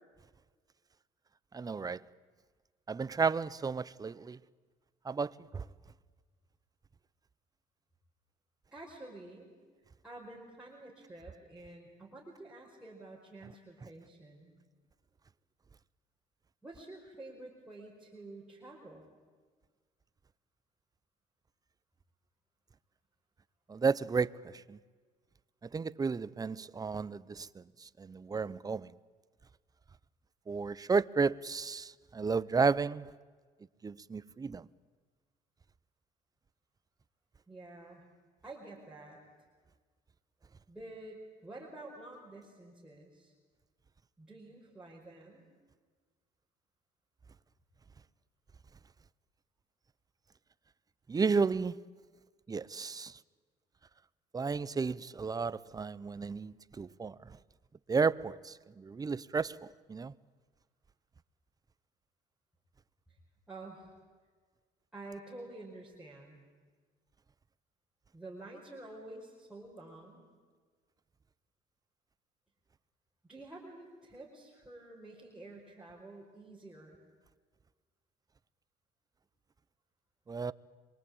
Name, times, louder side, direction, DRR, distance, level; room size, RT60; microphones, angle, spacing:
voice 1, 1.5-2.0 2.9-4.4 5.0-5.6 23.7-24.8 25.7-28.9 30.5-33.1 33.8-34.7 51.1-51.8 52.5-53.2 54.3-57.4 57.9-60.1 80.3-80.5, right 5 dB, 20° right, 0.7 m, -33 dB
voice 2, 8.7-9.5 10.0-14.5 16.6-19.1 37.5-38.1 38.4-39.2 40.7-43.3 44.2-45.4 63.5-63.9 64.9-66.4 68.1-70.2 73.3-77.0, right 2 dB, 5° right, 5.2 m, -49 dB
26.5 x 23.5 x 8.8 m
cardioid pair, 110°, 17 cm